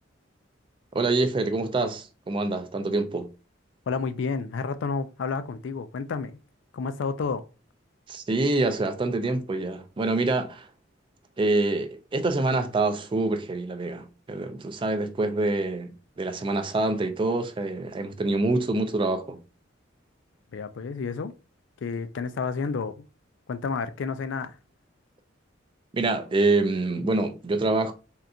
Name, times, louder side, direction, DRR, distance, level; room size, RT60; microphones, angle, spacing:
voice 1, 0.9-3.3 8.1-10.7 11.4-19.4 25.9-27.9, right 2 dB, 25° right, 0.3 m, -26 dB
voice 2, 3.9-6.3 6.7-7.4 20.5-21.3 21.8-22.9 23.5-24.6, left 5 dB, 65° left, 0.4 m, -30 dB
3.6 x 2.4 x 2.7 m
head